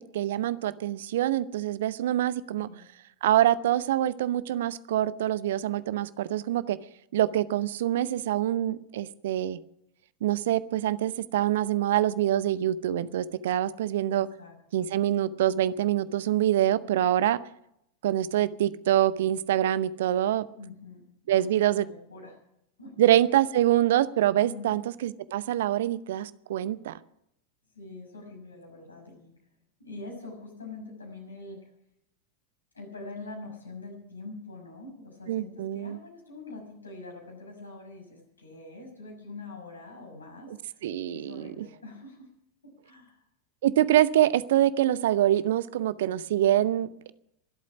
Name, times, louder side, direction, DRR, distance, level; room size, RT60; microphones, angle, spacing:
voice 1, 0.1-2.7 3.2-6.8 7.1-9.6 10.2-14.3 14.7-17.4 18.0-20.4 21.3-21.9 23.0-26.9 35.3-36.0 40.8-41.6 43.6-47.1, right 12 dB, 55° right, 16 dB, 0.7 m, -25 dB
voice 2, 14.1-14.9 20.6-21.1 21.3-22.4 22.8-22.9 24.4-24.8 27.7-29.3 29.8-31.7 32.7-42.3 42.6-43.2 46.4-46.7, left 3 dB, 75° left, 1 dB, 6.2 m, -44 dB
23.5 x 8.5 x 6.1 m, 0.78 s
figure-of-eight pair, 90°, 0 cm